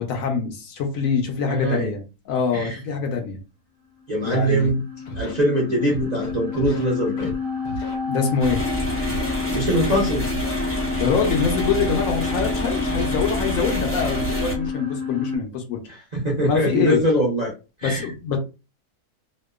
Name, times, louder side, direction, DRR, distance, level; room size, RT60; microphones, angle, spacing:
voice 1, 0.0-3.4 4.2-4.7 8.1-8.6 11.0-15.8 16.4-17.0 17.8-18.4, left 6 dB, 70° left, 0.9 m, -24 dB
voice 2, 1.4-1.9 2.5-2.8 4.1-4.8 5.2-7.3 9.5-10.3 15.9-17.5 17.8-18.1, right 1 dB, 45° right, 0.5 m, -22 dB
sound 1, 4.1-15.4, left 5 dB, 65° right, 1.0 m, -29 dB
Scratching (performance technique), 4.6-4.7 5.1-5.3 5.9-6.8 7.2-7.4 7.7-8.0 8.4-9.3 9.8-9.9 10.3-10.6 11.0-12.0 12.4-12.5 12.9-14.7, right 1 dB, 90° left, 1.2 m, -35 dB
sound 2, 8.4-14.6, right 1 dB, 20° left, 0.4 m, -27 dB
2.8 x 2.1 x 2.2 m
omnidirectional pair, 1.6 m